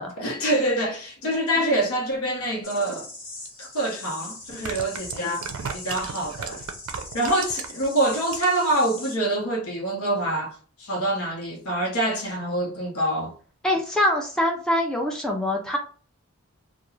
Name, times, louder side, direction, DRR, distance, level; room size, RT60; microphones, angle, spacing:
voice 1, 0.2-3.1 3.6-6.6 7.1-13.3, right 1 dB, 80° left, 0.9 m, -26 dB
sound 1, 2.6-9.2, left 2 dB, 40° left, 1.3 m, -41 dB
sound 2, 3.5-3.6 4.4-7.9 8.2-8.7 9.0-9.1, right 6 dB, 65° right, 0.4 m, -34 dB
voice 2, 13.6-15.8, left 1 dB, 5° left, 0.4 m, -24 dB
2.3 x 2.2 x 3.0 m
head